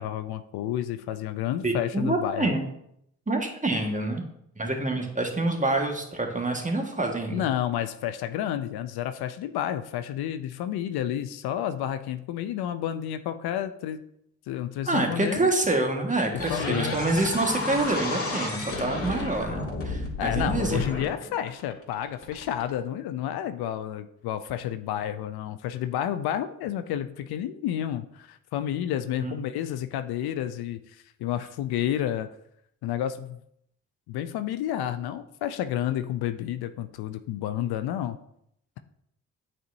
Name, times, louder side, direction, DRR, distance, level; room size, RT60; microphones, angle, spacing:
voice 1, 0.0-2.5 7.3-14.0 14.5-15.5 16.3-16.9 20.2-32.3 32.8-33.4 34.1-38.2, left 11 dB, 65° left, 10 dB, 0.5 m, -30 dB
voice 2, 1.6-2.7 3.3-4.2 4.6-7.5 14.9-20.8 29.2-29.4, right 2 dB, 20° right, 3 dB, 1.6 m, -27 dB
sound 1, 16.4-22.7, left 3 dB, 35° left, 2.2 m, -32 dB
9.1 x 4.3 x 2.6 m, 0.75 s
hypercardioid pair, 40°, 41 cm